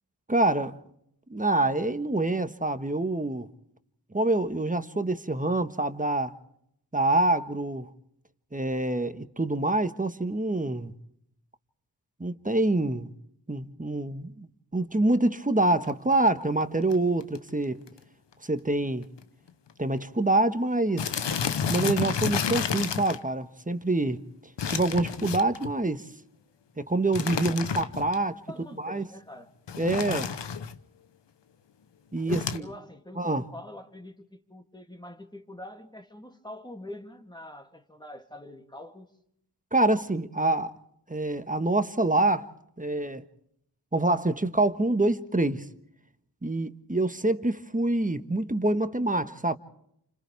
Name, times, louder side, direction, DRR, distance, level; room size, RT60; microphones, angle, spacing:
voice 1, 0.3-0.8 1.3-3.5 4.1-6.3 6.9-7.9 8.5-10.9 12.2-13.1 13.5-17.8 18.4-19.1 19.8-21.1 21.7-24.2 24.7-26.1 26.8-28.4 28.8-29.0 29.8-30.4 32.1-32.6 33.2-33.5 39.7-40.7 41.1-42.5 42.8-43.2 43.9-45.7 46.4-49.6, right 2 dB, 20° right, 1.4 m, -26 dB
sound 1, 15.6-15.9 16.6-16.7 16.9-17.0 17.2-17.5 17.9-18.0 18.3-18.4 19.2-19.3 19.5-19.7 20.0-20.1 21.0-23.2 24.6-25.7 27.1-28.1 29.7-30.8 32.3-32.6, left 7 dB, 85° left, 1.0 m, -30 dB
voice 2, 28.5-29.5 32.2-39.1 40.4-40.6, left 1 dB, 10° left, 2.7 m, -44 dB
29.0 x 26.5 x 3.5 m
cardioid pair, 45°, 42 cm